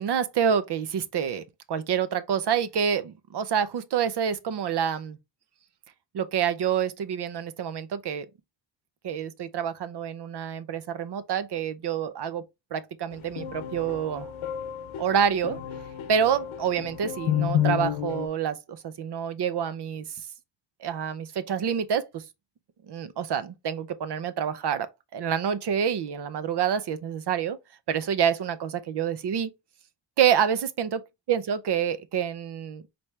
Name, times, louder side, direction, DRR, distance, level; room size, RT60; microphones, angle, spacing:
voice 1, 0.0-5.2 6.1-8.3 9.0-12.4 12.7-14.3 15.0-15.6 16.1-20.0 20.8-22.2 22.9-24.9 25.1-27.6 27.9-29.5 30.2-31.0 31.3-32.8, right 8 dB, 60° right, 0.7 m, -27 dB
sound 1, 13.1-18.3, left 10 dB, 75° left, 0.7 m, -30 dB
4.3 x 3.3 x 3.2 m
wide cardioid pair, 135°, 47 cm